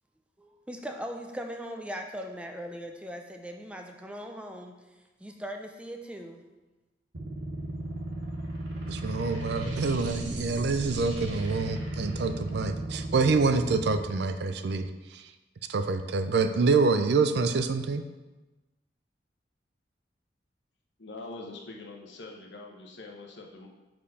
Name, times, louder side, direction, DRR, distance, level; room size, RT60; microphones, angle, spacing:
voice 1, 0.4-4.8 5.2-6.4, equal, 5° right, 3 dB, 0.5 m, -39 dB
sound 1, 7.1-14.0, right 1 dB, 90° right, 1.3 m, -35 dB
voice 2, 8.9-15.2 15.7-18.0, right 4 dB, 65° right, 9 dB, 0.4 m, -26 dB
voice 3, 21.0-23.7, left 2 dB, 75° left, 0 dB, 1.0 m, -44 dB
5.1 x 4.5 x 5.5 m, 1.1 s
head